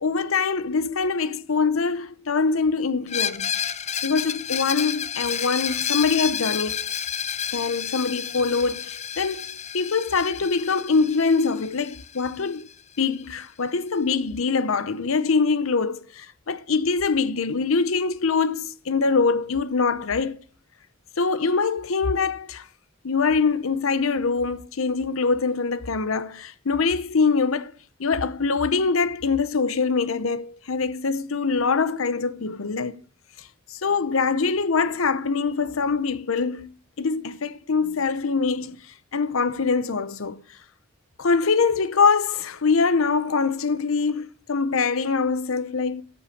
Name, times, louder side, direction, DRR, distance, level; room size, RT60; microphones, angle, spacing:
voice 1, 0.0-3.5 4.0-6.9 7.5-12.7 13.0-20.4 21.2-22.7 23.0-27.7 28.0-33.0 33.4-36.7 37.0-38.8 39.1-40.4 41.2-46.0, left 4 dB, 80° left, 0.8 m, -24 dB
Screech, 3.1-12.7, left 9 dB, 35° left, 0.5 m, -30 dB
14.5 x 6.2 x 8.4 m
head